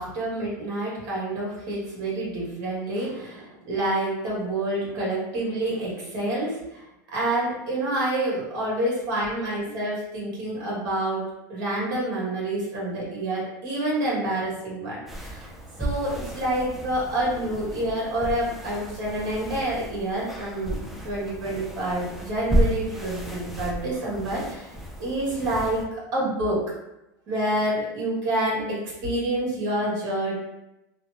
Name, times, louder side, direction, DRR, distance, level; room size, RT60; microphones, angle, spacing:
voice 1, 0.0-6.6 7.1-11.2 11.5-15.5 15.8-20.8 21.0-24.7 25.0-26.6 27.3-28.8 29.0-30.3, right 1 dB, 55° right, -5 dB, 1.5 m, -28 dB
sound 1, 15.1-25.9, right 1 dB, ahead, 0.4 m, -32 dB
3.1 x 2.0 x 2.5 m, 0.90 s
supercardioid pair, 120°, 10 cm